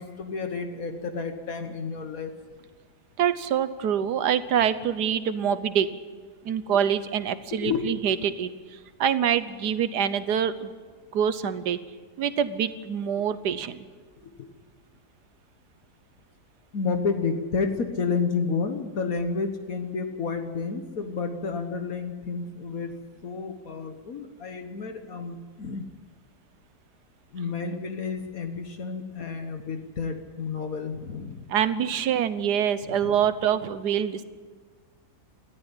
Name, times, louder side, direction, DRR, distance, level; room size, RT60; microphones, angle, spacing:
voice 1, 0.0-2.3 7.6-7.8 14.2-14.5 16.7-22.9 23.2-25.9 27.3-31.5 32.9-33.0, left 5 dB, 60° left, 6 dB, 1.6 m, -30 dB
voice 2, 3.2-5.9 6.4-10.7 11.1-11.8 12.2-13.9 31.5-34.2, right 8 dB, 85° right, 13 dB, 1.5 m, -25 dB
19.5 x 13.5 x 9.9 m, 1.5 s
omnidirectional pair, 1.7 m